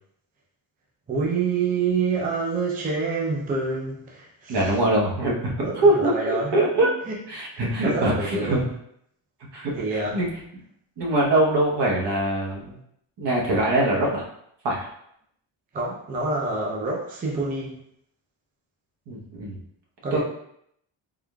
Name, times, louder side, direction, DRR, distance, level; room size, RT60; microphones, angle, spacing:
voice 1, 1.1-4.8 5.6-7.1 7.5-8.7 9.7-10.2 15.7-17.8 20.0-20.2, right 4 dB, 20° right, -3 dB, 0.4 m, -27 dB
voice 2, 4.5-6.9 7.3-8.6 9.5-10.3 11.0-12.8 13.2-14.2 14.6-14.9 19.1-19.6 20.1-20.2, right 1 dB, 60° right, -3 dB, 1.0 m, -23 dB
3.6 x 3.5 x 2.2 m, 0.72 s
wide cardioid pair, 180°, 46 cm